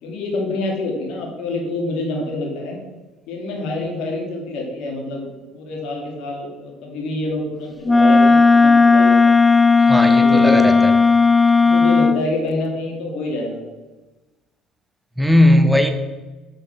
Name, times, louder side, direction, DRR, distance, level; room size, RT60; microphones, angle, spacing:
voice 1, 0.0-2.8 3.3-5.3 5.5-9.3 10.1-10.7 11.6-13.6, left 2 dB, 70° left, 0 dB, 2.5 m, -27 dB
Wind instrument woodwind instrument, 7.8-12.2, left 4 dB, 15° left, 0.3 m, -13 dB
voice 2, 9.9-10.9 15.2-15.9, left 1 dB, 5° right, 6 dB, 1.1 m, -16 dB
6.7 x 6.4 x 6.1 m, 1.2 s
supercardioid pair, 95°, 0 cm